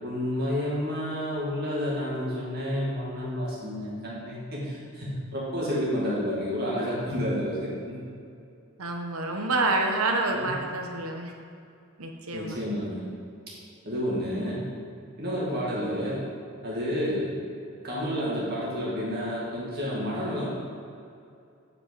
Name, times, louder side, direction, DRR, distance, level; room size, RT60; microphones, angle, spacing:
voice 1, 0.0-8.0 10.3-10.5 12.3-13.0 13.8-14.7 15.2-16.2 16.6-17.3 17.8-20.5, equal, 45° right, -6 dB, 2.0 m, -30 dB
voice 2, 8.8-11.3 12.0-12.6, right 2 dB, 80° right, 3 dB, 1.1 m, -28 dB
9.1 x 5.3 x 5.2 m, 2.5 s
head